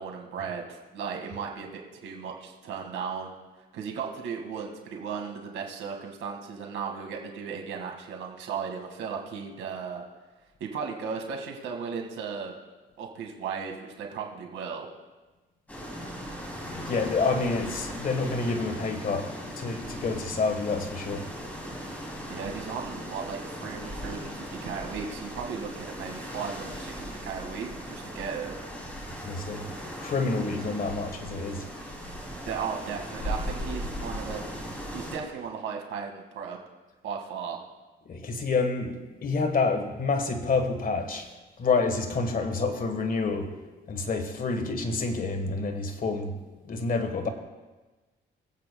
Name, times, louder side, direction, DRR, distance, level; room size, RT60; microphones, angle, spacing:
voice 1, 0.0-3.3 3.7-10.0 10.6-12.5 13.0-14.9 22.3-28.6 32.5-34.5 34.9-36.6 37.0-37.6, right 6 dB, 85° right, 1 dB, 1.9 m, -36 dB
sound 1, 15.7-35.2, equal, 5° left, 2.9 m, -38 dB
voice 2, 16.6-21.3 29.2-29.7 30.0-31.7 38.0-41.3 41.6-43.5 43.9-46.4 46.7-47.3, left 4 dB, 45° left, 5 dB, 1.4 m, -28 dB
23.5 x 8.1 x 2.3 m, 1.2 s
cardioid pair, 90°, 20 cm